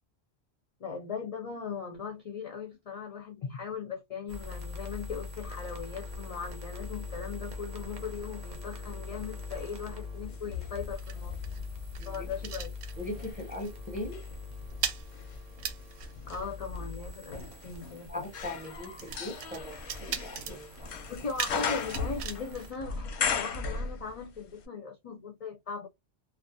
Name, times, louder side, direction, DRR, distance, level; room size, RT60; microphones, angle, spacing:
voice 1, 0.8-11.4 12.1-12.7 16.3-18.2 21.1-25.9, left 5 dB, 55° left, 0.4 m, -39 dB
sound 1, 4.3-22.7, left 4 dB, 50° right, 0.7 m, -43 dB
sound 2, 10.0-13.4 13.6-13.9 14.2-23.6, right 8 dB, 85° right, 0.9 m, -41 dB
sound 3, 10.3-12.5 13.0-24.4 24.6-24.7, left 6 dB, 90° left, 0.9 m, -37 dB
voice 2, 12.0-12.5 13.0-14.3 18.1-21.0, left 1 dB, 10° right, 0.6 m, -40 dB
2.4 x 2.3 x 2.6 m
omnidirectional pair, 1.1 m